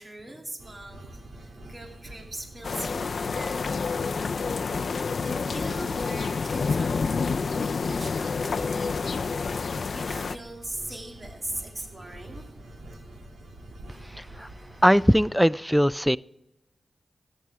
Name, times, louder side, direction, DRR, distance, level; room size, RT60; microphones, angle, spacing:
voice 1, 0.0-9.2 9.6-12.4, right 1 dB, 30° right, 2 dB, 2.6 m, -41 dB
sound 1, 0.6-15.2, right 1 dB, 80° right, 2.6 m, -45 dB
sound 2, 2.6-10.4, left 5 dB, 65° left, 0.4 m, -28 dB
voice 2, 14.1-14.5 14.8-16.2, equal, ahead, 19 dB, 0.3 m, -20 dB
14.5 x 9.7 x 3.5 m, 0.87 s
cardioid pair, 65°, 0 cm